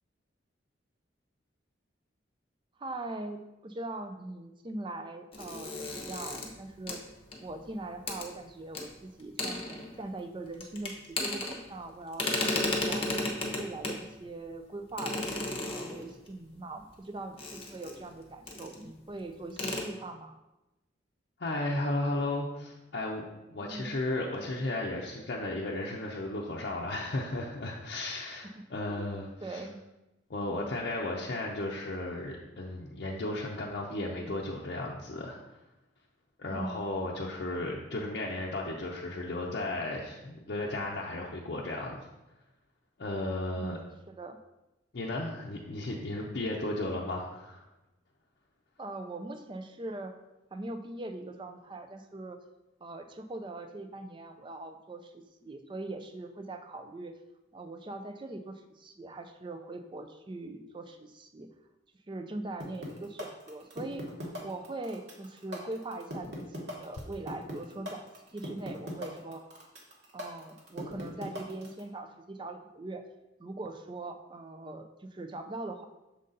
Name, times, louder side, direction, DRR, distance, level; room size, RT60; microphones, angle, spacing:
voice 1, 2.8-7.0 7.4-13.1 13.6-15.3 15.6-20.4 23.6-24.0 28.4-29.1 29.4-29.8 36.4-36.8 43.6-44.4 48.8-50.1 50.5-52.4 52.8-57.1 57.5-61.5 62.1-68.1 68.3-69.4 70.1-73.0 73.4-75.8, right 2 dB, 25° right, 7 dB, 0.4 m, -41 dB
sound 1, 5.3-7.6 8.1-8.3 8.7-8.8 9.2-10.2 10.5-11.9 12.1-14.0 15.0-16.3 17.4-18.1 18.5-18.8 19.1-19.2 19.5-19.8, left 2 dB, 30° left, 0.8 m, -34 dB
voice 2, 21.4-23.2 23.5-29.6 30.3-35.4 36.4-42.1 43.0-43.8 44.9-47.6, left 2 dB, 60° left, -3 dB, 0.6 m, -34 dB
sound 2, 62.6-71.8, left 1 dB, 60° right, 1.3 m, -39 dB
6.4 x 3.9 x 3.8 m, 1.0 s
head